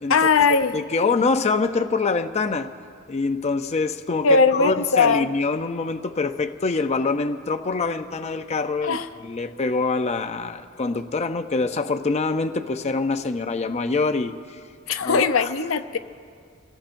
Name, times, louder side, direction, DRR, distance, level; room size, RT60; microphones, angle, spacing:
voice 1, 0.1-0.7 4.2-5.3 8.8-9.1 14.9-16.0, left 4 dB, 75° left, 9 dB, 0.7 m, -19 dB
voice 2, 0.7-2.7 3.1-14.6 15.0-15.5, left 3 dB, 35° left, 7 dB, 0.5 m, -25 dB
28.5 x 17.5 x 2.6 m, 2.2 s
head